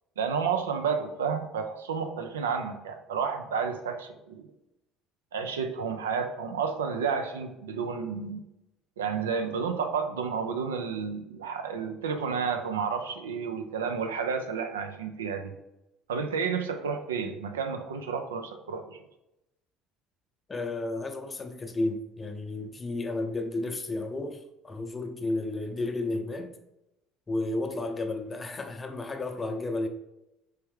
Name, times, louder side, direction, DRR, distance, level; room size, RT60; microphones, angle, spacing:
voice 1, 0.2-4.5 5.3-8.4 9.0-15.5 16.1-19.0, right 6 dB, 80° right, 0.4 m, -31 dB
voice 2, 20.5-26.5 27.3-29.9, left 2 dB, 25° left, 0.6 m, -32 dB
4.6 x 3.4 x 3.1 m
figure-of-eight pair, 60°, 0 cm